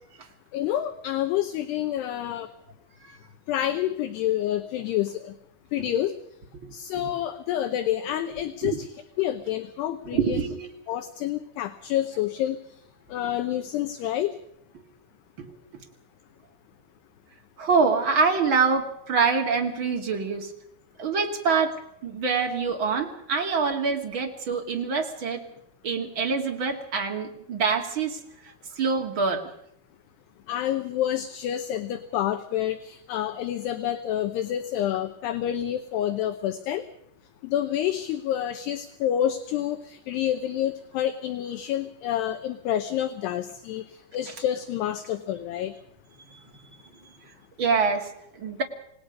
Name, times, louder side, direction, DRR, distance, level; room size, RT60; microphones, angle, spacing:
voice 1, 0.5-2.5 3.5-5.3 5.7-6.1 6.7-8.8 9.2-10.4 10.9-12.6 13.1-14.3 30.5-36.8 37.4-43.8 44.1-45.7, left 11 dB, 75° left, 8 dB, 2.6 m, -28 dB
voice 2, 6.6-7.1 8.6-8.8 10.0-10.7 15.4-15.8 17.6-20.5 21.0-25.4 25.8-29.5 44.2-44.3 46.3-46.4 47.6-48.6, right 5 dB, 45° right, 2 dB, 1.7 m, -26 dB
27.5 x 19.0 x 5.3 m, 0.74 s
omnidirectional pair, 5.6 m